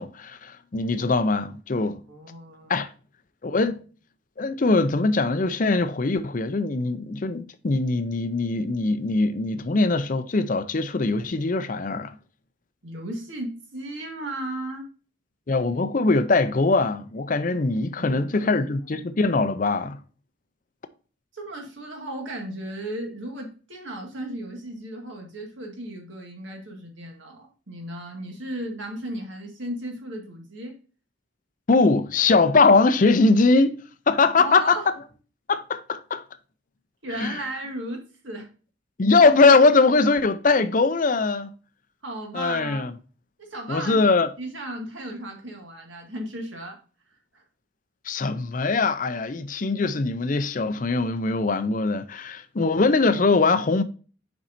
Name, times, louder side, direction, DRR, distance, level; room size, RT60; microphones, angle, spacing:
voice 1, 0.0-2.0 2.7-2.9 3.4-3.8 4.4-12.2 15.5-20.0 31.7-33.8 34.1-34.9 35.5-36.2 37.1-37.4 39.0-41.5 42.3-42.9 43.7-44.3 48.0-53.8, left 3 dB, 40° left, 0.5 m, -21 dB
voice 2, 2.1-2.8 12.8-14.9 18.0-18.7 21.3-30.8 34.3-34.9 37.0-38.5 42.0-42.9 43.4-44.1 44.4-46.8 47.3-47.4, right 1 dB, 65° right, 1.9 m, -35 dB
7.2 x 5.3 x 2.6 m
head